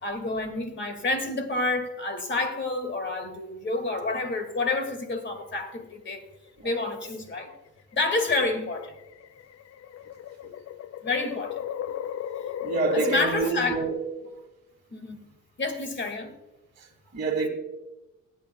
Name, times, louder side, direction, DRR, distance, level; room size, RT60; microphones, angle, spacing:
voice 1, 0.0-6.2 6.6-7.5 7.9-8.8 11.0-11.6 12.9-13.8 14.9-15.2 15.6-16.3, left 3 dB, 40° left, 2.0 m, -29 dB
sound 1, 4.6-5.4 6.6-7.0 7.9-13.2, left 10 dB, 55° left, 0.5 m, -35 dB
voice 2, 12.4-14.0 16.8-17.5, right 4 dB, 35° right, 2.0 m, -28 dB
20.5 x 8.6 x 2.3 m
cardioid pair, 90°, 30 cm